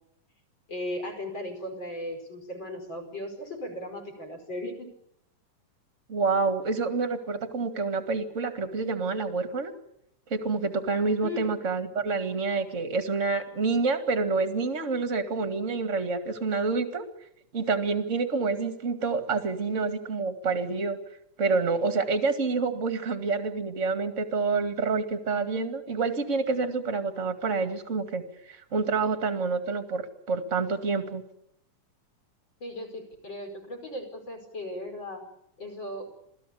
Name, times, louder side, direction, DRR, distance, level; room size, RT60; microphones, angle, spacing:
voice 1, 0.7-4.9 11.2-11.5 32.6-35.2 35.6-36.1, left 1 dB, 35° left, 4 dB, 5.7 m, -37 dB
voice 2, 6.1-9.7 10.3-17.0 17.5-21.0 21.4-28.2 28.5-31.2, right 4 dB, 25° right, 8 dB, 2.0 m, -28 dB
27.5 x 17.5 x 8.4 m, 0.76 s
omnidirectional pair, 3.7 m